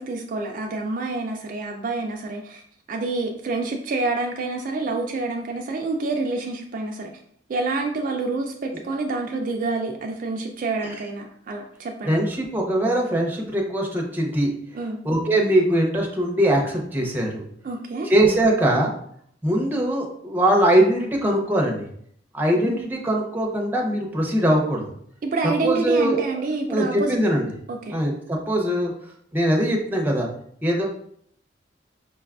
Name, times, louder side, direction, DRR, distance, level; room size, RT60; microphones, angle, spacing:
voice 1, 0.0-2.6 2.9-7.1 7.5-12.2 14.7-15.0 17.6-18.1 22.6-22.9 25.2-27.2 27.7-27.9, right 3 dB, 50° right, 2 dB, 0.3 m, -27 dB
voice 2, 12.0-14.5 15.0-17.4 18.1-18.9 19.4-21.8 22.3-24.9 25.6-26.4 26.7-27.4 27.9-28.9 29.3-30.3 30.6-30.8, right 1 dB, 10° right, -1 dB, 0.6 m, -21 dB
5.2 x 2.3 x 2.3 m, 0.66 s
head